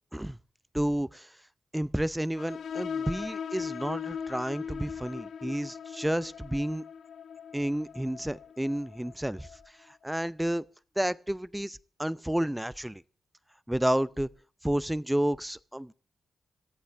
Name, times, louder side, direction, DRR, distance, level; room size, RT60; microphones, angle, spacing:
voice 1, 0.7-1.4 1.7-6.8 7.5-10.6 11.0-13.0 13.7-14.3 14.6-15.9, right 1 dB, 5° right, 0.6 m, -31 dB
sound 1, 2.4-9.7, left 7 dB, 75° left, 0.7 m, -39 dB
19.0 x 14.5 x 3.5 m
cardioid pair, 55°, 0 cm